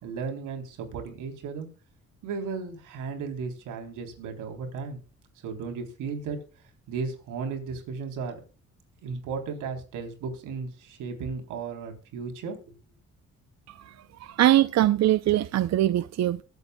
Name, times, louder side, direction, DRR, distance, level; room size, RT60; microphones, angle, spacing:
voice 1, 0.0-1.7 2.2-5.0 5.4-6.4 6.9-8.4 9.0-12.7, right 5 dB, 90° right, 3.7 m, -35 dB
voice 2, 14.2-16.4, right 13 dB, 60° right, 0.6 m, -22 dB
23.0 x 8.2 x 2.3 m
cardioid pair, 90°, 30 cm